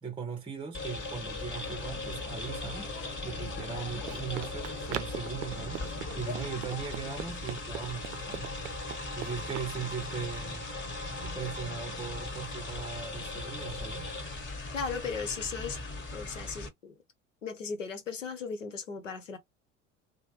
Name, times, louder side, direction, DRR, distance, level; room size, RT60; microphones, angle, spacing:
voice 1, 0.0-8.5 9.2-10.7 11.2-14.1, right 6 dB, 15° right, 0.7 m, -39 dB
sound 1, 0.7-16.7, left 2 dB, 30° left, 1.5 m, -38 dB
sound 2, 1.5-7.2, left 8 dB, 60° left, 0.7 m, -46 dB
Run, 3.5-9.7, right 12 dB, 75° right, 0.5 m, -42 dB
voice 2, 14.7-15.8 16.1-17.0 17.4-19.4, left 5 dB, 90° left, 0.9 m, -36 dB
3.2 x 2.1 x 3.0 m
figure-of-eight pair, 70°, 37 cm